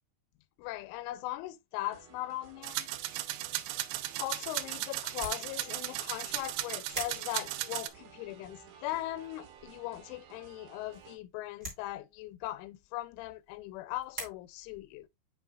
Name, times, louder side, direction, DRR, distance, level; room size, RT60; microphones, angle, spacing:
voice 1, 0.6-2.9 4.2-15.1, left 16 dB, 90° left, 3.0 m, -39 dB
sound 1, 1.9-11.2, right 7 dB, 65° right, 3.0 m, -55 dB
sound 2, 2.6-7.9, right 16 dB, 85° right, 3.0 m, -36 dB
sound 3, 5.0-14.2, right 1 dB, 35° right, 0.9 m, -48 dB
8.1 x 5.3 x 2.4 m
omnidirectional pair, 5.5 m